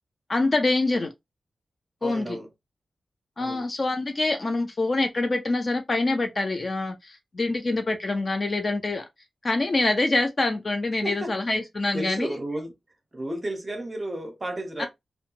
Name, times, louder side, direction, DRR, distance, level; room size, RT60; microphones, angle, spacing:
voice 1, 0.3-1.1 2.0-2.4 3.4-9.0 9.4-12.3 14.8-14.9, left 2 dB, 35° left, 0.4 m, -25 dB
voice 2, 2.0-2.5 3.4-3.7 11.0-11.3 11.9-12.8 13.1-14.9, right 1 dB, 20° right, 0.6 m, -32 dB
2.7 x 2.1 x 2.7 m
wide cardioid pair, 150°, 0 cm